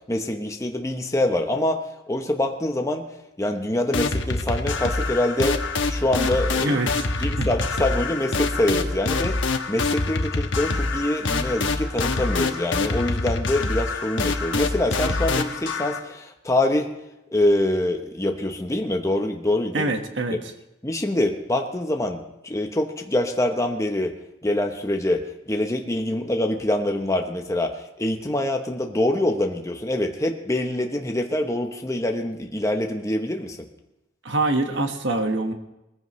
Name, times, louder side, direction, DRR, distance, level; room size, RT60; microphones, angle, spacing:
voice 1, 0.1-1.8 2.1-3.1 3.4-6.8 7.2-16.9 17.3-19.9 20.3-20.4 20.8-24.1 24.4-33.6, left 1 dB, 15° left, 3 dB, 0.9 m, -25 dB
sound 1, 3.9-16.0, left 3 dB, 85° left, 1.2 m, -25 dB
voice 2, 6.6-7.5 19.7-20.4 34.2-35.5, right 2 dB, 75° right, 5 dB, 1.5 m, -25 dB
20.5 x 15.0 x 3.2 m, 0.91 s
head